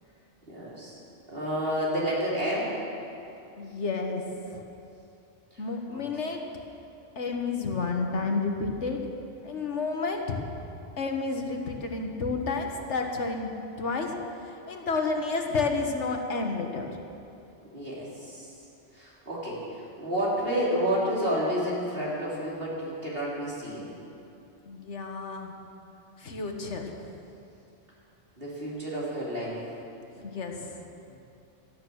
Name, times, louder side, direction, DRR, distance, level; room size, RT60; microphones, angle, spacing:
voice 1, 0.5-1.0 1.3-2.8 5.5-5.6 5.9-6.0 17.6-18.5 18.9-23.9 28.4-29.6 31.1-31.2, equal, 55° right, -6 dB, 4.1 m, -30 dB
voice 2, 3.6-4.6 5.6-6.4 7.1-9.1 9.4-10.4 11.0-13.5 13.8-14.2 14.5-16.9 24.7-25.5 26.2-27.0 30.1-30.8, left 4 dB, 80° left, 3 dB, 1.7 m, -30 dB
16.5 x 12.5 x 6.3 m, 2.8 s
omnidirectional pair, 1.2 m